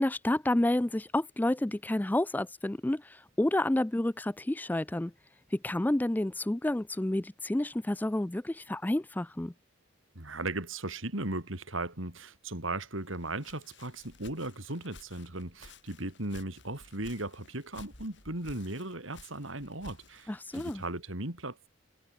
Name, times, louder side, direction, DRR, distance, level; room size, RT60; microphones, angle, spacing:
voice 1, 0.0-5.1 5.5-9.5 20.3-20.8, left 1 dB, 10° left, 0.3 m, -29 dB
voice 2, 10.1-21.7, right 2 dB, 70° right, 4.3 m, -37 dB
Walk footsteps, 13.1-21.0, left 3 dB, 55° left, 4.2 m, -54 dB
head